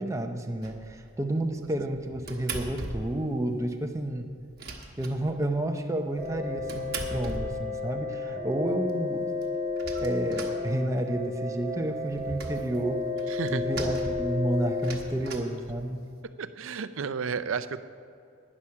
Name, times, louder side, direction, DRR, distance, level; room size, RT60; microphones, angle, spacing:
voice 1, 0.0-4.3 5.0-9.3 10.0-13.0 13.5-16.1, right 1 dB, 15° right, 4 dB, 0.7 m, -30 dB
sound 1, 0.6-1.0 1.6-3.3 3.6-3.7 4.0-4.1 4.3-5.6 6.2-8.0 8.5-8.6 8.9-9.0 9.2-11.2 11.6-16.2, right 3 dB, 50° right, 1.2 m, -40 dB
sound 2, 6.2-14.9, left 3 dB, 5° left, 3.4 m, -32 dB
voice 2, 13.3-13.6 16.4-17.8, right 6 dB, 70° right, 13 dB, 0.5 m, -32 dB
11.0 x 9.9 x 5.8 m, 2.4 s
head